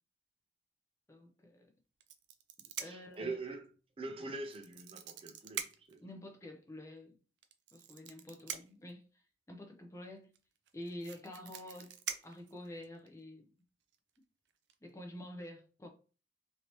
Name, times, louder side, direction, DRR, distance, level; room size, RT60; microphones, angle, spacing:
voice 1, 1.1-1.7 2.8-3.4 6.0-7.1 7.7-9.2 9.5-10.3 10.7-11.9 12.2-13.5 14.8-15.9, left 1 dB, 15° left, 0.6 m, -48 dB
sound 1, 2.0-3.2 4.4-6.0 7.4-8.9 10.3-10.4 10.7-13.1 13.9-14.2 14.5-14.7, right 9 dB, 85° right, 0.4 m, -44 dB
voice 2, 2.8-3.6 4.0-6.0, right 3 dB, 35° right, 0.6 m, -43 dB
3.2 x 2.8 x 2.9 m
head